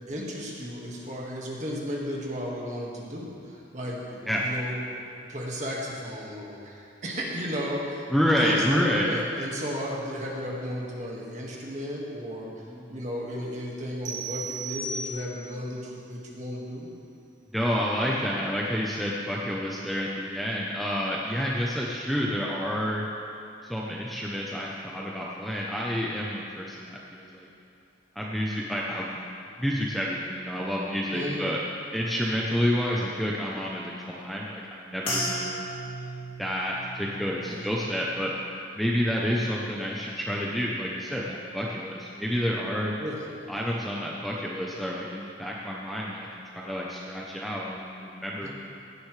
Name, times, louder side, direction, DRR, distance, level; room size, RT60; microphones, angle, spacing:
voice 1, 0.1-5.0 5.3-8.1 8.4-12.5 12.9-16.9 31.1-31.4 37.4-37.7 43.0-43.2 48.4-48.5, equal, 40° right, -3 dB, 1.8 m, -34 dB
voice 2, 8.1-9.2 12.6-13.0 17.5-23.1 23.6-27.5 28.2-29.2 29.6-31.6 31.9-35.7 36.4-38.3 38.7-42.9 43.5-46.3 46.5-48.5, equal, ahead, -4 dB, 0.7 m, -29 dB
sound 1, 14.1-15.6, right 2 dB, 90° right, 1.3 m, -35 dB
sound 2, 35.0-39.6 39.9-40.5 41.1-41.4, equal, 30° left, 2.5 m, -37 dB
16.5 x 10.0 x 3.3 m, 2.5 s
head